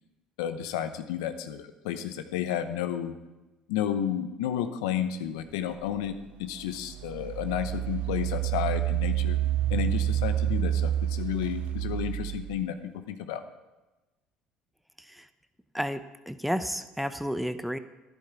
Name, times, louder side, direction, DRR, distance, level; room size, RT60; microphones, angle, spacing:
voice 1, 0.4-3.1 3.7-6.1 6.4-9.4 9.7-12.7 13.1-13.4, left 10 dB, 85° left, 9 dB, 0.8 m, -31 dB
Engine, 6.0-6.1 6.7-12.6, right 12 dB, 65° right, 0.5 m, -29 dB
voice 2, 15.7-17.8, equal, ahead, 11 dB, 0.8 m, -31 dB
12.0 x 11.0 x 4.7 m, 1.1 s
hypercardioid pair, 70°, 3 cm